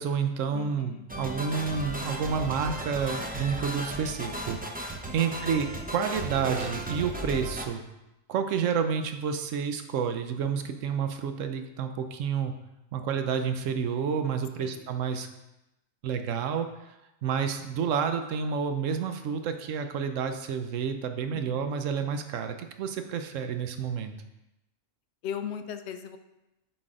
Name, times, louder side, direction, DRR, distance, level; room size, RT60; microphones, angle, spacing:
voice 1, 0.0-7.8 8.3-12.6 12.9-15.3 16.0-16.9 17.2-24.1, right 6 dB, 70° right, 7 dB, 1.0 m, -30 dB
voice 2, 0.5-1.1 5.1-5.4 14.6-14.9 21.3-21.7 25.2-26.2, left 8 dB, 65° left, 9 dB, 0.7 m, -38 dB
sound 1, 1.1-7.7, right 1 dB, 15° right, 0.3 m, -35 dB
7.7 x 4.0 x 5.0 m, 0.94 s
omnidirectional pair, 1.4 m